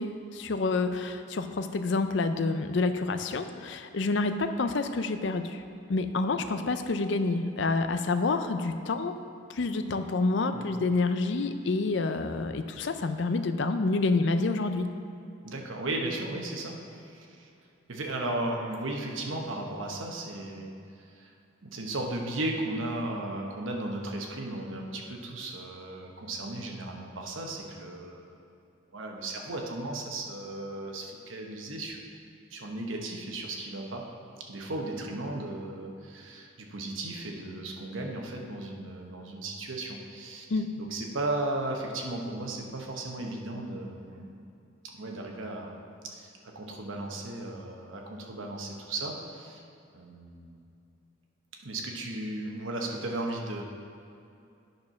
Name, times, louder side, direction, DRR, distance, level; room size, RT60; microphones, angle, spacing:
voice 1, 0.0-5.6 5.9-9.2 9.5-14.9 40.5-40.7, left 3 dB, 60° left, 8 dB, 0.5 m, -28 dB
voice 2, 15.4-17.5 17.9-20.7 21.1-21.3 21.6-28.4 28.9-32.0 32.5-34.1 34.5-40.4 40.8-44.4 44.9-49.6 49.9-50.6 51.6-53.6, right 2 dB, 75° right, 1 dB, 1.0 m, -35 dB
9.6 x 4.5 x 5.8 m, 2.6 s
head